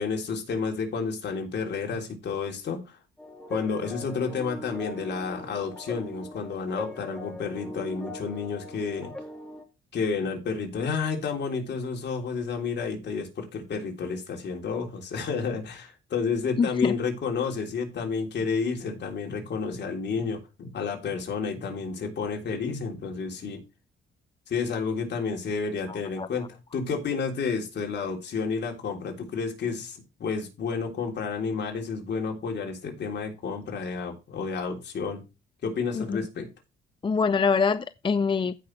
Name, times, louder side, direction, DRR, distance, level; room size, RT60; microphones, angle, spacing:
voice 1, 0.0-3.0 3.5-9.1 9.9-23.6 24.5-35.2 35.6-36.5, left 5 dB, 60° left, 3.4 m, -31 dB
sound 1, 3.2-9.6, left 2 dB, 5° left, 3.3 m, -40 dB
voice 2, 16.6-16.9 25.9-26.3 35.9-36.2 37.0-38.6, left 5 dB, 25° left, 0.5 m, -25 dB
15.0 x 5.7 x 3.2 m
cardioid pair, 90°, 20 cm